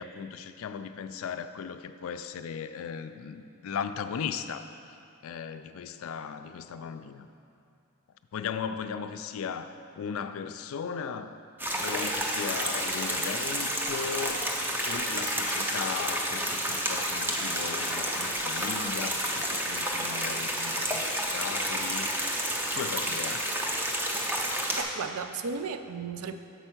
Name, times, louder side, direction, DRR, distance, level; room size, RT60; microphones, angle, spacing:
voice 1, 0.0-4.7 5.2-7.3 8.3-11.4 11.7-14.4 14.9-22.4 22.7-23.5, left 6 dB, 75° left, 10 dB, 0.3 m, -37 dB
sound 1, 11.6-24.8, equal, 10° right, 0.4 m, -30 dB
voice 2, 24.4-26.4, right 5 dB, 85° right, 9 dB, 0.4 m, -35 dB
6.9 x 4.5 x 5.8 m, 2.6 s
head